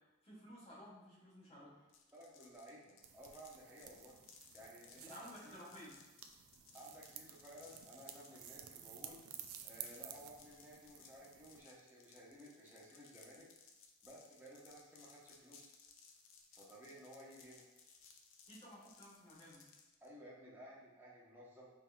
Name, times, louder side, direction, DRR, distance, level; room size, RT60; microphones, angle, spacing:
voice 1, 0.2-1.9 5.0-6.0 18.5-19.6, equal, 30° left, -6 dB, 1.3 m, -55 dB
sound 1, 1.9-20.1, left 5 dB, 65° left, 0.5 m, -63 dB
voice 2, 2.1-4.2 4.5-5.5 6.7-9.2 9.6-13.5 14.0-15.7 16.5-17.6 20.0-21.7, equal, 10° right, -6 dB, 0.8 m, -56 dB
sound 2, 3.0-11.6, right 9 dB, 85° right, 0.4 m, -54 dB
5.5 x 2.8 x 2.3 m, 1.1 s
head